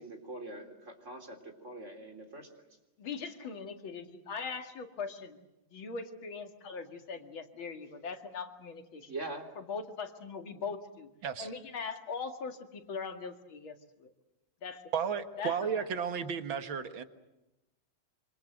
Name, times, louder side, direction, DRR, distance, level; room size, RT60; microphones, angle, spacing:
voice 1, 0.0-2.5 9.1-9.5, right 2 dB, 35° right, 4 dB, 3.8 m, -43 dB
voice 2, 3.0-5.4 5.7-9.1 9.6-11.1 11.4-14.1 14.6-14.9 15.4-15.9, left 5 dB, 80° left, 6 dB, 3.0 m, -41 dB
voice 3, 14.9-17.0, right 7 dB, 75° right, 9 dB, 2.3 m, -33 dB
26.5 x 26.0 x 7.8 m, 0.95 s
omnidirectional pair, 2.2 m